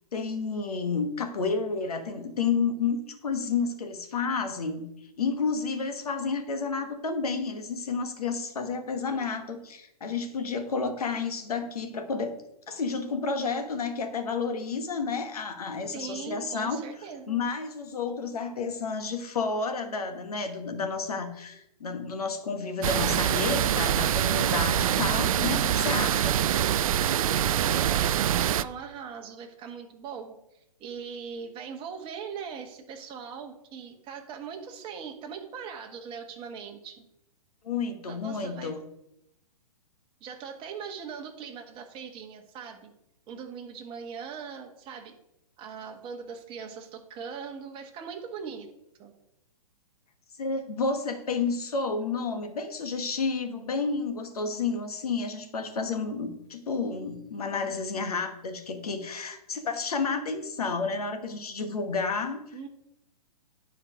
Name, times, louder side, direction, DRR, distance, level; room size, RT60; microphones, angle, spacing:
voice 1, 0.1-4.9 5.2-12.3 12.7-16.8 17.3-26.4 37.6-38.8 50.4-62.4, left 4 dB, 70° left, 7 dB, 1.4 m, -31 dB
voice 2, 15.9-17.4 27.5-30.3 30.8-37.1 38.1-38.8 40.2-42.9 43.3-45.2 45.6-48.7 49.0-49.1 62.5-62.7, right 6 dB, 25° right, 3 dB, 1.3 m, -40 dB
sound 1, 22.8-28.6, right 10 dB, 60° right, 0.4 m, -25 dB
9.9 x 4.5 x 5.0 m, 0.81 s
hypercardioid pair, 120°, 20 cm